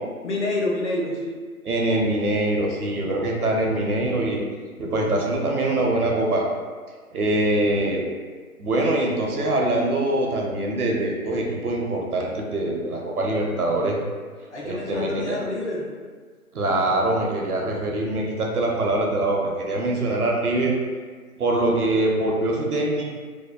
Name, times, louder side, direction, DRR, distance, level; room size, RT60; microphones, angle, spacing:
voice 1, 0.2-1.3 14.5-15.9, left 2 dB, 50° left, -4 dB, 0.6 m, -27 dB
voice 2, 1.7-4.4 4.8-6.4 7.1-8.0 8.6-14.0 14.6-15.3 16.5-20.7 21.4-23.1, right 1 dB, 80° right, 0 dB, 0.6 m, -23 dB
2.7 x 2.1 x 2.3 m, 1.5 s
figure-of-eight pair, 150°, 44 cm